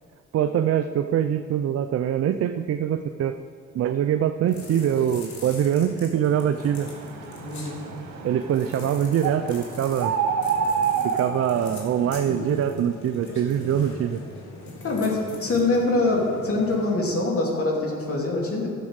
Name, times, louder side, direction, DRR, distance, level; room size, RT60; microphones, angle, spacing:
voice 1, 0.3-3.3 3.7-6.9 8.2-10.1 11.0-14.2, right 9 dB, 55° right, 9 dB, 0.5 m, -24 dB
sound 1, 4.5-16.9, left 3 dB, 70° left, 2.6 m, -40 dB
sound 2, 6.6-12.1, right 6 dB, 75° right, 1.4 m, -29 dB
voice 2, 7.4-7.8 13.7-13.9 14.8-18.7, left 2 dB, 50° left, -1 dB, 2.8 m, -24 dB
12.0 x 7.4 x 6.5 m, 2.3 s
cardioid pair, 90°, 30 cm